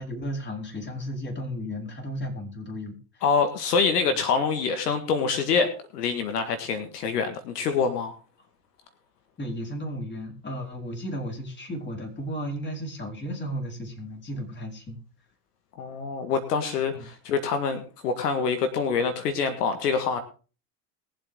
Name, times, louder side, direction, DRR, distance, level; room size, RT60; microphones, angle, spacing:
voice 1, 0.0-3.2 9.4-15.0 16.9-17.1, equal, 25° left, 1 dB, 4.6 m, -34 dB
voice 2, 3.2-8.1 15.8-20.2, left 5 dB, 80° left, 8 dB, 1.8 m, -26 dB
21.0 x 7.8 x 3.7 m, 0.35 s
hypercardioid pair, 85°, 47 cm